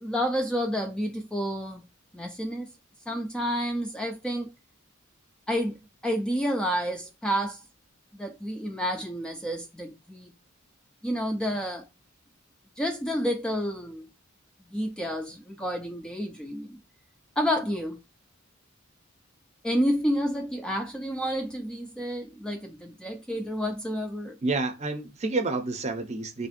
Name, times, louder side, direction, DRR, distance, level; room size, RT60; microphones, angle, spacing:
voice 1, 0.0-1.8 2.1-2.7 3.1-4.5 5.5-5.8 6.0-7.6 8.1-10.3 11.0-11.8 12.8-14.1 14.7-16.8 17.4-18.0 19.6-24.4, equal, 5° left, 0.3 m, -29 dB
voice 2, 24.4-26.5, right 3 dB, 35° right, 0.6 m, -29 dB
3.2 x 2.5 x 4.1 m
head